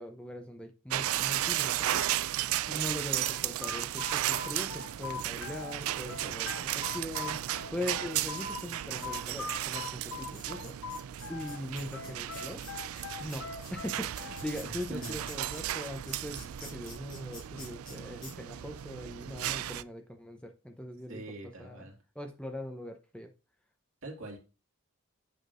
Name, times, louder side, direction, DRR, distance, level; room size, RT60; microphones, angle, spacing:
voice 1, 0.0-2.0 2.7-10.8 11.3-12.7 13.2-21.8 22.1-23.3, left 1 dB, 5° left, 4 dB, 0.7 m, -41 dB
sound 1, 0.9-19.8, right 13 dB, 85° right, 0.4 m, -35 dB
sound 2, 3.2-5.8 6.1-8.6 9.0-11.6 11.9-14.6, left 5 dB, 90° left, 1.3 m, -41 dB
sound 3, 5.1-7.3 8.0-8.1 8.5-9.1 9.5-9.6 9.8-18.0 18.2-18.3, left 2 dB, 25° left, 3.5 m, -49 dB
voice 2, 14.6-15.3 21.1-22.0 24.0-24.4, right 2 dB, 70° right, 0 dB, 2.2 m, -43 dB
8.1 x 6.0 x 2.5 m, 0.33 s
head